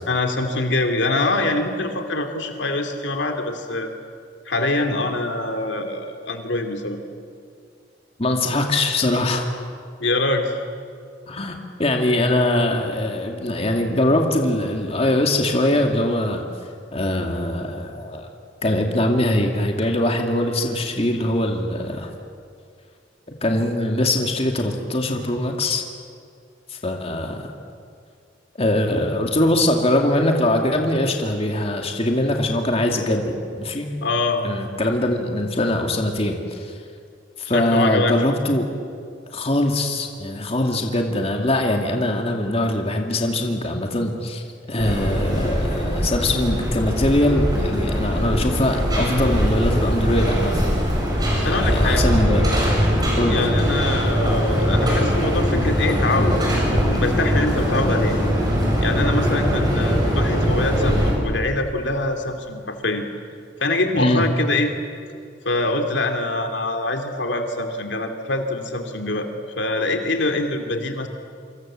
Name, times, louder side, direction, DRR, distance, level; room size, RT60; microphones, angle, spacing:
voice 1, 0.1-3.9 4.5-7.0 10.0-10.6 34.0-34.4 37.5-38.1 51.3-52.1 53.3-58.2 58.8-63.0 63.6-64.7 65.4-69.3 69.6-71.1, left 2 dB, 70° left, 5 dB, 2.8 m, -24 dB
voice 2, 8.2-9.5 11.3-16.4 16.9-18.3 18.6-22.1 23.4-25.8 26.7-27.5 28.6-33.9 34.4-36.7 37.4-38.7 39.3-50.6 51.3-52.4 53.2-53.4 64.0-64.2, left 1 dB, 35° left, 2 dB, 2.4 m, -22 dB
sound 1, 44.8-61.1, equal, 20° right, 7.5 m, -21 dB
28.0 x 26.0 x 7.6 m, 2.3 s
head